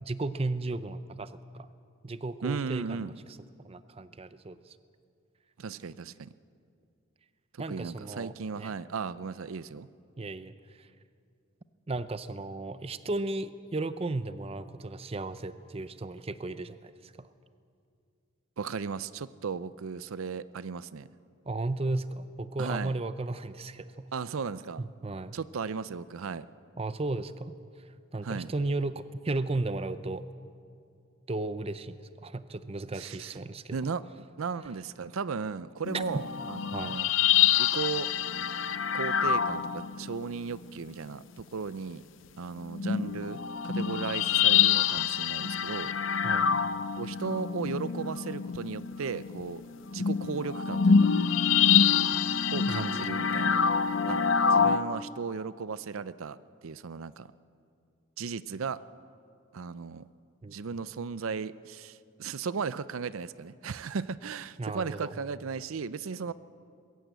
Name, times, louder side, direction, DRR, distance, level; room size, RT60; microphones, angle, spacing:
voice 1, 0.0-1.7 2.0-3.1 3.6-4.8 7.6-8.7 10.2-10.9 11.9-17.3 21.5-24.1 24.8-25.4 26.8-27.5 28.1-30.2 31.3-33.8 35.9-36.0 36.7-37.0 46.2-46.6 52.7-53.0 60.4-60.6 64.6-65.1, right 2 dB, 25° right, 13 dB, 0.5 m, -35 dB
voice 2, 2.4-3.1 5.6-6.3 7.5-9.9 18.6-21.1 22.6-23.0 24.1-24.8 25.3-26.5 28.2-28.5 32.9-33.4 33.7-37.1 37.5-38.1 38.9-42.0 42.4-45.9 46.9-49.6 49.9-51.1 52.5-53.6 54.1-54.2 54.5-56.4 56.6-57.3 58.2-58.8 59.5-60.1 60.5-66.3, right 5 dB, 75° right, 16 dB, 0.5 m, -36 dB
sound 1, 35.9-40.4 41.4-41.5 42.7-54.8, left 7 dB, 60° left, 0.6 m, -26 dB
21.5 x 15.5 x 8.1 m, 2.4 s
head